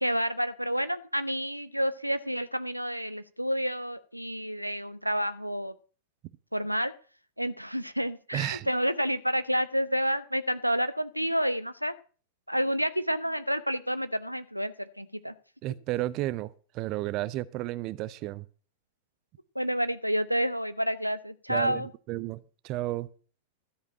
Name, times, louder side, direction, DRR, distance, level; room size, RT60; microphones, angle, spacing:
voice 1, 0.0-5.7 6.5-6.9 7.4-11.9 12.5-15.3 19.6-21.9, equal, 90° right, 13 dB, 0.6 m, -29 dB
voice 2, 8.3-8.7 15.6-18.5 21.5-23.1, right 16 dB, 40° right, 17 dB, 0.6 m, -33 dB
13.5 x 5.0 x 8.7 m, 0.40 s
figure-of-eight pair, 90°, 0 cm